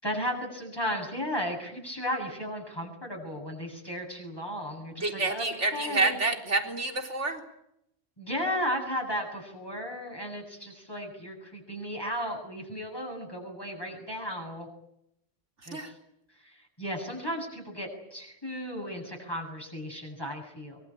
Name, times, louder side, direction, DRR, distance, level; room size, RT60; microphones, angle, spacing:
voice 1, 0.0-5.5 5.7-6.1 8.2-14.7 15.7-16.0 16.4-20.8, equal, 20° left, -1 dB, 7.6 m, -35 dB
voice 2, 5.0-7.4 15.7-15.9, right 2 dB, 70° right, 4 dB, 4.1 m, -28 dB
24.0 x 24.0 x 8.6 m, 0.78 s
omnidirectional pair, 1.2 m